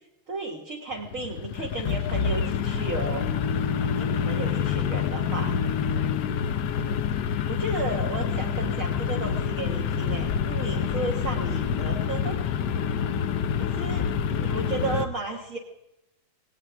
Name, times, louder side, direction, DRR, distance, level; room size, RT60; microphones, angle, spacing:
voice 1, 0.3-3.3 3.8-5.5 6.8-7.0 7.5-12.4 13.5-15.6, right 3 dB, 45° right, 0 dB, 1.6 m, -33 dB
sound 1, 0.9-15.1, left 7 dB, 65° left, 1.2 m, -27 dB
18.0 x 17.5 x 3.4 m, 0.92 s
omnidirectional pair, 2.2 m